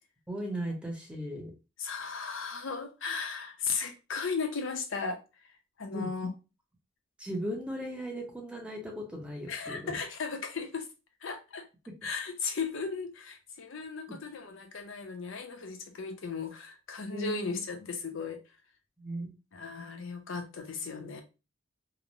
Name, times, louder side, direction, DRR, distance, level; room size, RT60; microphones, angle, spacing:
voice 1, 0.3-1.5 5.9-6.1 7.2-9.9 17.1-17.5 19.0-19.3, equal, 5° right, 0.6 m, -37 dB
voice 2, 1.8-5.5 5.8-6.3 9.5-10.9 11.2-11.7 12.0-18.4 19.5-21.2, left 5 dB, 65° left, 0.5 m, -36 dB
2.9 x 2.0 x 2.5 m
head